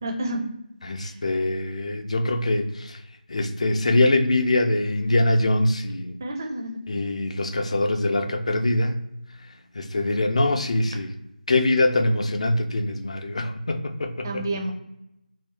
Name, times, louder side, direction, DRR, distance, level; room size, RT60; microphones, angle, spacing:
voice 1, 0.0-0.5 1.0-1.2 6.2-6.8 14.2-14.7, right 1 dB, 20° right, 2 dB, 0.5 m, -29 dB
voice 2, 0.8-3.0 3.3-6.2 6.9-9.0 9.8-11.1 11.5-14.4, left 2 dB, 40° left, 8 dB, 0.4 m, -23 dB
3.8 x 2.2 x 2.8 m, 0.86 s
figure-of-eight pair, 165°, 5 cm